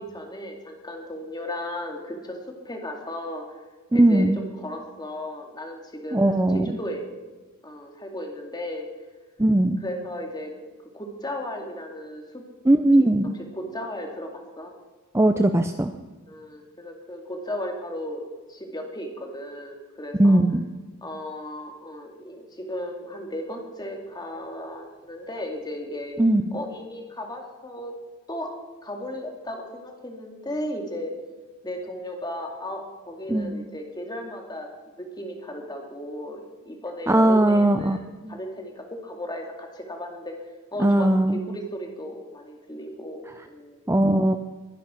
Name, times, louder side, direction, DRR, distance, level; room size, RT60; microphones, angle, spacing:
voice 1, 0.0-3.4 3.9-6.2 6.5-7.1 7.6-8.9 9.8-10.5 10.9-12.4 13.0-13.1 13.5-14.7 16.3-20.4 21.0-26.2 26.5-27.9 28.3-28.5 28.8-31.1 31.6-34.7 35.0-40.4 40.7-43.8, left 1 dB, 20° left, 2 dB, 2.4 m, -35 dB
voice 2, 3.9-4.4 6.1-6.8 9.4-9.8 12.7-13.3 15.1-15.9 20.2-20.7 26.2-26.4 33.3-33.6 37.1-38.0 38.2-38.4 40.8-41.4 43.9-44.4, right 1 dB, 10° right, 8 dB, 0.5 m, -19 dB
22.0 x 10.5 x 4.5 m, 1.3 s
head